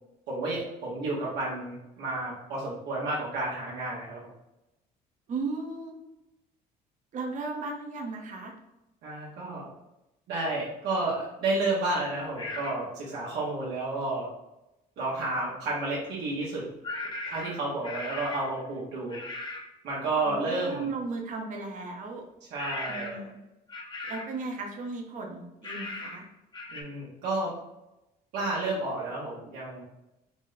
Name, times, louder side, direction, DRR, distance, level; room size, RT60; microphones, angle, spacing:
voice 1, 0.3-4.3 9.0-9.7 10.3-14.3 15.0-16.6 17.3-19.2 19.8-20.9 22.5-23.3 26.7-27.5 28.3-29.8, right 2 dB, 80° right, -6 dB, 1.1 m, -31 dB
voice 2, 5.3-5.9 7.1-8.5 20.2-22.2 22.9-23.4 24.1-26.3, right 3 dB, 50° right, 1 dB, 0.9 m, -36 dB
sound 1, 12.4-12.8 16.8-18.6 19.1-19.7 22.6-23.3 23.7-24.4 25.6-26.2 26.5-26.8, left 2 dB, 25° left, 0.8 m, -38 dB
4.0 x 2.1 x 3.9 m, 0.93 s
cardioid pair, 110°, 17 cm